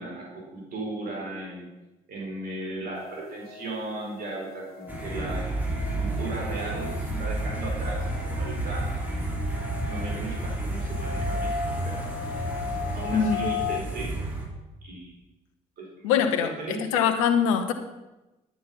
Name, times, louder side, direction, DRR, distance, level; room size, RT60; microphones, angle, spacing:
voice 1, 0.0-1.7 2.1-5.4 5.9-8.1 8.4-8.9 9.9-12.2 12.9-14.2 14.8-15.1 15.8-16.8, right 2 dB, 65° right, -2 dB, 4.4 m, -36 dB
sound 1, 2.9-13.8, left 7 dB, 70° left, 1.3 m, -38 dB
sound 2, 4.9-14.5, right 2 dB, 10° right, 3.9 m, -31 dB
voice 2, 13.1-13.5 16.0-17.7, left 7 dB, 85° left, 8 dB, 1.0 m, -23 dB
10.5 x 8.7 x 5.8 m, 1.0 s
hypercardioid pair, 50°, 17 cm